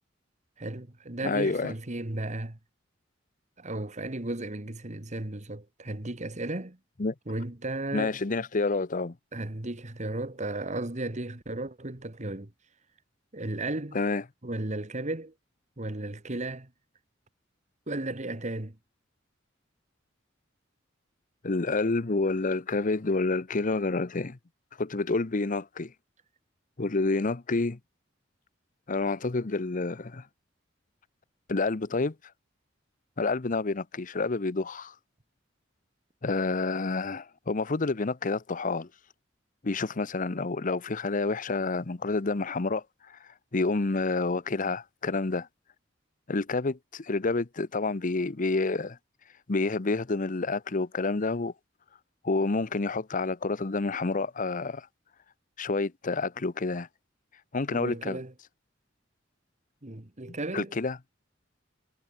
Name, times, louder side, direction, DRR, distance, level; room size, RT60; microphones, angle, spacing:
voice 1, 0.6-2.6 3.6-6.8 7.3-8.2 9.3-12.5 13.3-14.0 14.4-15.3 15.8-16.7 17.9-18.8 57.7-58.3 59.8-60.7, right 2 dB, 40° right, 1.8 m, -34 dB
voice 2, 1.2-1.7 7.0-7.1 7.9-9.1 13.9-14.2 21.4-24.4 24.8-25.9 26.8-27.8 28.9-30.2 31.5-32.1 33.2-34.9 36.2-38.9 39.6-43.2 43.5-45.5 46.3-49.0 49.5-51.5 52.2-54.9 55.6-56.9 57.5-58.2 60.5-61.0, left 3 dB, 45° left, 0.8 m, -28 dB
head